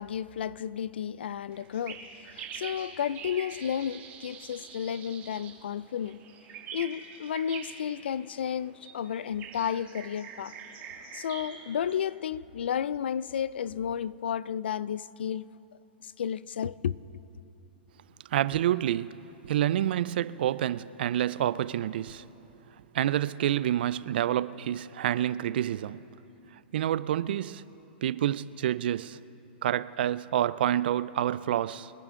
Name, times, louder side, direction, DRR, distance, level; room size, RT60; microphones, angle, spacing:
voice 1, 0.0-6.2 6.7-10.5 11.1-15.5 16.0-17.0, left 8 dB, 80° left, 0.3 m, -32 dB
sound 1, 1.5-12.0, right 7 dB, 30° right, 1.7 m, -45 dB
voice 2, 18.3-22.2 22.9-26.0 26.5-27.6 28.0-29.2 29.6-31.9, right 11 dB, 70° right, 0.4 m, -28 dB
23.0 x 10.5 x 3.7 m
hypercardioid pair, 135°, 6 cm